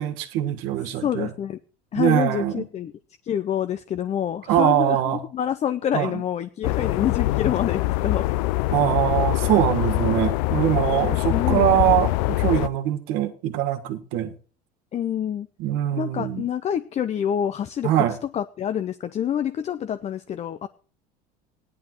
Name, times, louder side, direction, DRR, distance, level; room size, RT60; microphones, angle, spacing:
voice 1, 0.0-1.3 1.9-2.7 4.5-5.2 5.9-6.2 8.7-14.3 15.6-16.4 17.8-18.2, right 12 dB, 70° right, 1.5 m, -23 dB
voice 2, 1.0-1.6 1.9-2.9 3.2-8.3 11.3-12.0 14.9-15.5 16.0-18.0 18.3-20.7, left 9 dB, 35° left, 0.6 m, -27 dB
sound 1, 6.6-12.7, left 18 dB, 80° left, 0.4 m, -24 dB
16.0 x 10.5 x 3.0 m
supercardioid pair, 105°, 21 cm